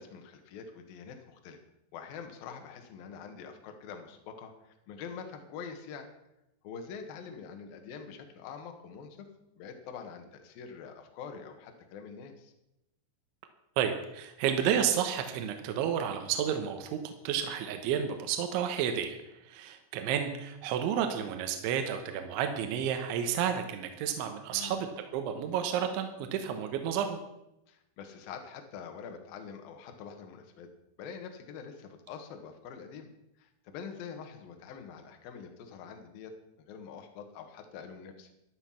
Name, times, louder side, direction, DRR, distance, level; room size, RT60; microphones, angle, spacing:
voice 1, 0.0-1.6 1.9-6.1 6.6-9.3 9.6-12.5 24.5-24.9 27.7-30.7 31.0-33.1 33.4-38.3, left 6 dB, 60° left, 5 dB, 2.8 m, -45 dB
voice 2, 13.8-27.2, right 8 dB, 80° right, 6 dB, 3.4 m, -31 dB
13.0 x 12.5 x 5.8 m, 0.86 s
omnidirectional pair, 5.6 m